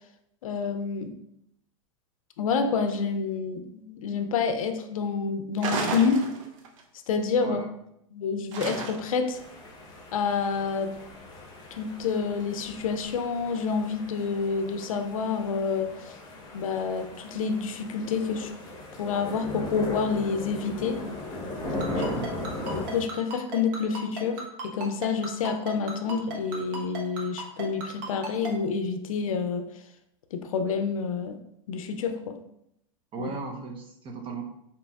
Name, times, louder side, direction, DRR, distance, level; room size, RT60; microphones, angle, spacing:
voice 1, 0.4-1.1 2.4-6.3 7.1-7.6 8.1-9.4 10.1-10.9 11.7-16.1 16.5-18.5 19.0-21.0 22.7-29.7 30.3-31.4 31.7-32.4 33.2-33.3, left 5 dB, 90° left, 7 dB, 0.5 m, -28 dB
sound 1, 5.6-6.8 8.5-9.3, right 4 dB, 70° right, 0.6 m, -32 dB
voice 2, 7.4-7.8 21.9-22.4 33.1-34.4, right 4 dB, 30° right, 3 dB, 0.6 m, -36 dB
sound 2, 9.3-23.0, left 2 dB, 25° left, 1.0 m, -38 dB
Ringtone, 21.8-28.5, right 3 dB, 45° right, 1.0 m, -35 dB
5.1 x 2.9 x 2.3 m, 0.78 s
hypercardioid pair, 120°, 17 cm